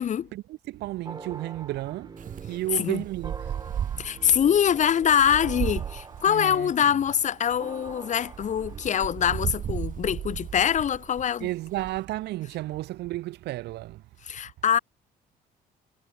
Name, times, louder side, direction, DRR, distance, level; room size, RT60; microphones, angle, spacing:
voice 1, 0.3-2.2 2.4-3.5 6.3-7.0 11.4-14.0, right 17 dB, 80° right, 2.3 m, -33 dB
sound 1, 1.1-9.8, right 4 dB, 25° right, 4.5 m, -45 dB
Wind, 2.2-12.0, right 9 dB, 50° right, 3.3 m, -35 dB
voice 2, 4.0-11.5 14.2-14.8, left 9 dB, 45° left, 1.6 m, -24 dB
cardioid pair, 110°, 17 cm